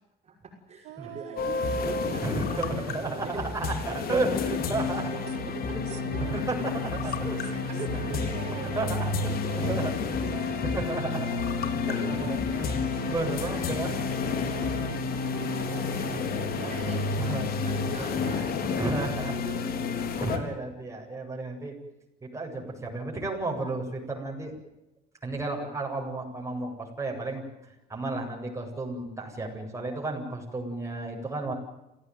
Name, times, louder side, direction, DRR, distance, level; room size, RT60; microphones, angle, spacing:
voice 1, 0.2-6.5 7.5-10.4 12.4-14.0 15.3-17.2 17.6-20.3, right 4 dB, 40° right, 0 dB, 5.9 m, -43 dB
sound 1, 0.8-2.9 3.2-18.9, right 13 dB, 85° right, 2.2 m, -45 dB
sound 2, 1.4-20.4, left 4 dB, 65° left, 3.7 m, -30 dB
voice 2, 2.2-5.1 5.7-7.6 7.9-8.0 8.5-10.3 10.6-11.3 11.9-12.8 13.0-13.9 14.4-14.6 17.2-17.5 17.9-18.1 18.7-19.4 20.2-21.7 22.2-24.5 25.2-31.5, right 2 dB, 15° right, 1 dB, 7.9 m, -33 dB
27.5 x 17.0 x 9.4 m, 0.93 s
cardioid pair, 110°, 17 cm